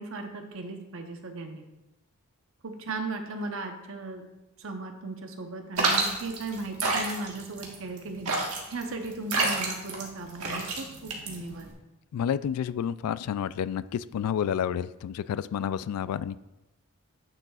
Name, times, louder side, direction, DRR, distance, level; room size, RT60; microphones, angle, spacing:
voice 1, 0.0-1.6 2.6-4.3 4.6-8.4 8.7-11.7, right 3 dB, 60° right, 5 dB, 0.8 m, -37 dB
sound 1, 5.8-11.7, right 3 dB, 80° right, 1.5 m, -29 dB
voice 2, 12.1-16.4, left 8 dB, 90° left, 17 dB, 0.3 m, -30 dB
9.7 x 6.7 x 2.4 m, 0.98 s
head